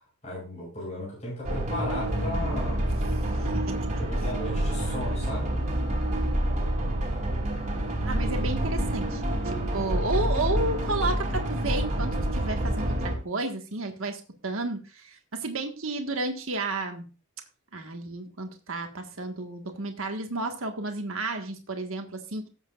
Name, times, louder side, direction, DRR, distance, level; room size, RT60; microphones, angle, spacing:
voice 1, 0.0-2.8 4.0-5.6, left 1 dB, 30° left, -5 dB, 7.3 m, -35 dB
sound 1, 1.4-13.1, right 1 dB, 35° right, 2.9 m, -28 dB
voice 2, 3.4-3.9 8.0-17.1 17.7-22.5, right 2 dB, 70° right, 4 dB, 1.7 m, -32 dB
17.5 x 7.9 x 2.5 m, 0.33 s
head